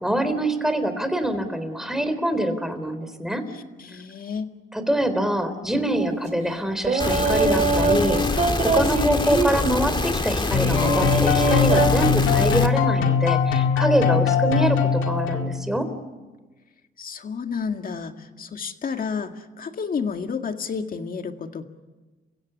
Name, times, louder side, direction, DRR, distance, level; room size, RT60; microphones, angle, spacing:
voice 1, 0.0-3.4 4.7-15.9, right 1 dB, ahead, 9 dB, 3.7 m, -25 dB
voice 2, 3.5-4.5 17.0-21.6, left 5 dB, 45° left, 6 dB, 2.0 m, -31 dB
sound 1, 5.9-6.2 6.8-9.8 10.6-11.9, right 3 dB, 35° right, 3.0 m, -23 dB
sound 2, 7.0-12.7, left 3 dB, 25° left, 2.2 m, -25 dB
sound 3, 10.5-15.7, left 7 dB, 85° left, 2.1 m, -21 dB
30.0 x 16.0 x 10.0 m, 1.2 s
cardioid pair, 90°, 20 cm